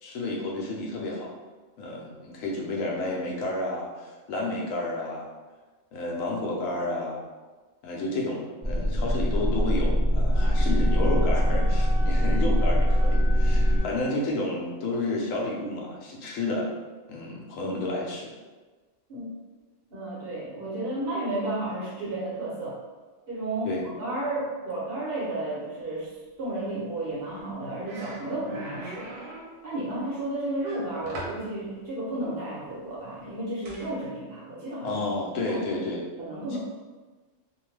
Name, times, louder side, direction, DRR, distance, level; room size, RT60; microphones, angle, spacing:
voice 1, 0.0-1.3 1.8-5.3 5.9-7.2 7.8-16.7 17.1-18.3 23.6-23.9 34.8-36.0 36.5-36.6, left 2 dB, 85° left, -2 dB, 1.0 m, -31 dB
sound 1, 8.6-13.8, equal, 10° right, 0.6 m, -22 dB
Wind instrument woodwind instrument, 10.3-14.2, equal, 35° left, 0.4 m, -41 dB
voice 2, 19.9-22.8 23.3-29.1 29.6-35.0 35.4-35.8 36.2-36.6, right 1 dB, 55° right, -6 dB, 0.9 m, -32 dB
sound 2, 27.4-27.5 27.9-29.6 30.6-31.5 33.6-33.9, right 2 dB, 80° right, 0.9 m, -40 dB
2.6 x 2.2 x 3.1 m, 1.3 s
omnidirectional pair, 1.3 m